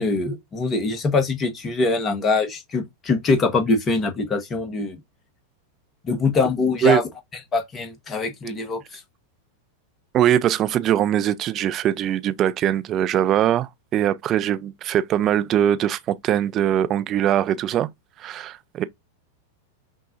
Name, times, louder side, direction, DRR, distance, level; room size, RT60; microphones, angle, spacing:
voice 1, 0.0-5.0 6.0-7.0 7.5-9.0, left 3 dB, 25° left, 1.1 m, -23 dB
voice 2, 10.1-17.9 18.2-18.8, right 11 dB, 30° right, 0.5 m, -21 dB
5.9 x 2.3 x 2.5 m
figure-of-eight pair, 90°, 0 cm